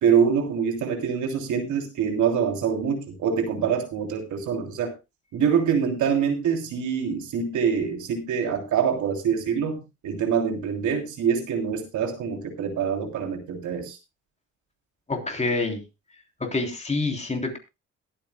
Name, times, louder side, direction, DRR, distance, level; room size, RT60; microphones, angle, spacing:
voice 1, 0.0-4.9 5.3-14.0, right 7 dB, 75° right, 4 dB, 3.0 m, -25 dB
voice 2, 15.1-15.8 16.4-17.6, left 3 dB, 20° left, 3 dB, 3.4 m, -27 dB
21.5 x 8.8 x 2.2 m, 0.25 s
cardioid pair, 90°, 30 cm